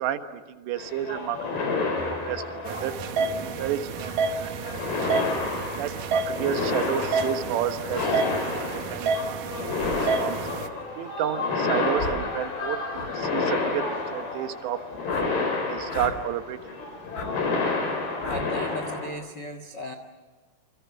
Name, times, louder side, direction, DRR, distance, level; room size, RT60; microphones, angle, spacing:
voice 1, 0.0-2.9 3.4-5.3 5.7-8.3 8.6-9.4 9.9-10.4 11.0-14.8 15.2-16.6, right 10 dB, 90° right, 8 dB, 3.6 m, -32 dB
sound 1, 0.8-19.1, left 3 dB, 65° left, 7.2 m, -30 dB
sound 2, 2.7-10.7, right 4 dB, 65° right, 2.4 m, -30 dB
sound 3, 7.9-8.1 9.8-10.0 11.9-12.2 12.9-13.1 15.0-15.3 15.9-16.2 17.1-17.3 18.2-18.5, left 3 dB, 45° left, 1.1 m, -34 dB
voice 2, 18.2-19.9, left 1 dB, 80° left, 6 dB, 0.9 m, -36 dB
28.5 x 26.5 x 7.2 m, 1.3 s
omnidirectional pair, 4.9 m